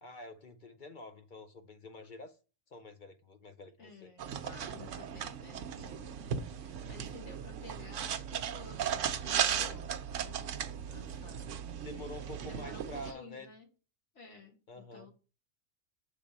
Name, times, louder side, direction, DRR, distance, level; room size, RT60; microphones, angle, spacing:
voice 1, 0.0-2.4 2.7-4.1 11.8-13.5 14.7-15.1, left 2 dB, 50° left, 0.6 m, -47 dB
voice 2, 3.8-11.9 12.5-13.7 14.1-15.1, left 3 dB, 70° left, 2.1 m, -53 dB
sound 1, 4.2-13.1, right 8 dB, 75° right, 0.9 m, -37 dB
6.6 x 3.4 x 5.3 m
omnidirectional pair, 1.3 m